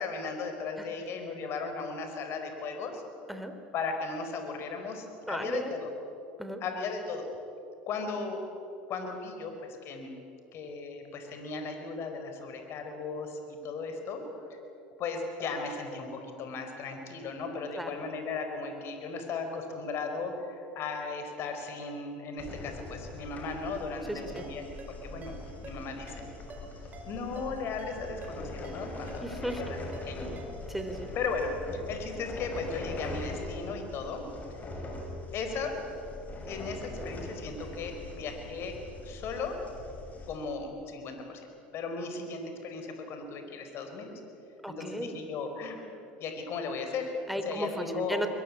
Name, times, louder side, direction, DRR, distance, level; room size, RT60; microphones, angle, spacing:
voice 1, 0.0-3.0 3.7-5.9 6.6-7.3 7.9-8.4 8.9-9.5 9.8-10.1 10.5-14.2 14.5-14.6 15.0-24.6 25.0-25.3 25.6-26.3 27.0-29.2 29.6-30.3 31.1-34.2 35.3-35.7 36.5-38.7 39.0-39.6 40.3-41.5 41.7-44.1 44.7-45.8 46.2-48.2, left 4 dB, 50° left, 5 dB, 4.6 m, -36 dB
voice 2, 5.3-5.7 6.4-6.6 17.7-17.9 24.1-24.4 29.2-29.8 30.7-31.1 44.6-45.2 47.3-48.3, right 1 dB, ahead, 7 dB, 3.2 m, -35 dB
sound 1, 22.4-40.4, left 2 dB, 30° left, 6.4 m, -41 dB
Ringtone, 24.4-31.2, right 3 dB, 30° right, 5.6 m, -50 dB
23.0 x 21.5 x 8.7 m, 2.8 s
hypercardioid pair, 85°, 5 cm